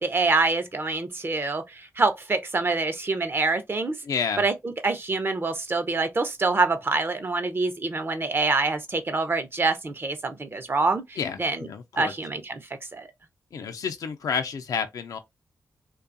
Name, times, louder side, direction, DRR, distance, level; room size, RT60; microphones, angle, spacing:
voice 1, 0.0-4.0 4.4-11.7 12.0-13.1, right 3 dB, 40° right, 0.6 m, -26 dB
voice 2, 4.0-4.4 11.2-12.1 13.5-15.2, left 6 dB, 80° left, 0.4 m, -30 dB
2.6 x 2.3 x 2.5 m
cardioid pair, 60°, 6 cm